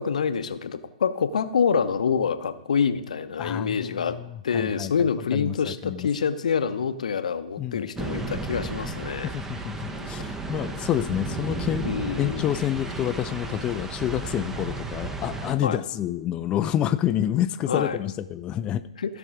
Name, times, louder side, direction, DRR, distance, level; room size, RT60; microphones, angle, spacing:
voice 1, 0.0-4.2 4.4-9.3 11.8-12.5 15.6-15.8 17.7-18.0 19.0-19.2, left 6 dB, 70° left, 12 dB, 0.7 m, -26 dB
voice 2, 3.4-6.1 7.6-7.9 9.2-11.9 12.2-18.8, left 11 dB, 25° left, 10 dB, 0.3 m, -28 dB
sound 1, 8.0-15.5, right 2 dB, 10° right, 0.7 m, -33 dB
16.0 x 5.8 x 3.8 m, 0.88 s
figure-of-eight pair, 120°, 4 cm